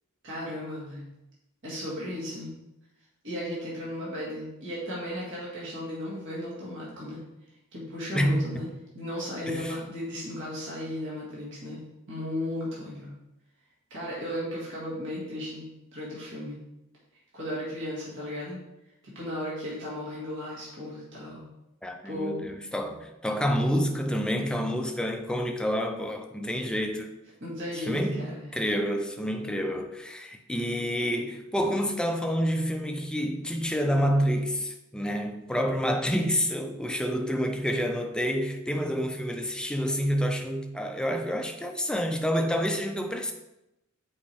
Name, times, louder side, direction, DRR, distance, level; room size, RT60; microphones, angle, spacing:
voice 1, 0.2-1.0 1.6-2.5 3.2-7.2 7.7-8.7 8.9-11.8 12.1-13.1 13.9-16.6 17.3-18.6 19.0-21.4 22.0-22.5 27.4-28.5, left 1 dB, 60° right, 2.2 m, -35 dB
voice 2, 9.5-9.8 21.8-27.1 27.9-28.3 28.5-43.3, equal, 5° left, 0.5 m, -28 dB
7.5 x 4.8 x 3.5 m
head